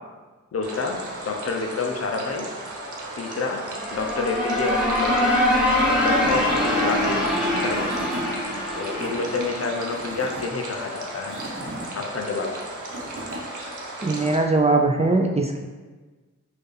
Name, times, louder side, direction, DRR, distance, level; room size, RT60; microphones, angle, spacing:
voice 1, 0.5-1.0 1.2-2.5 3.1-3.6 3.9-5.3 5.9-7.2 7.5-7.9 8.7-11.4 11.9-12.5, left 4 dB, 55° left, 2 dB, 0.6 m, -28 dB
sound 1, 0.6-14.4, right 1 dB, 75° right, 0.7 m, -36 dB
sound 2, 3.7-10.4, left 1 dB, ahead, 0.9 m, -24 dB
Tools / Wood, 7.4-7.5 7.7-8.3 8.7-9.1 9.9-10.4 11.1-11.9 12.6-13.4, equal, 40° right, 0.9 m, -36 dB
voice 2, 14.0-15.6, right 3 dB, 20° right, 1 dB, 0.3 m, -20 dB
4.4 x 2.5 x 3.2 m, 1.3 s
wide cardioid pair, 60°, 30 cm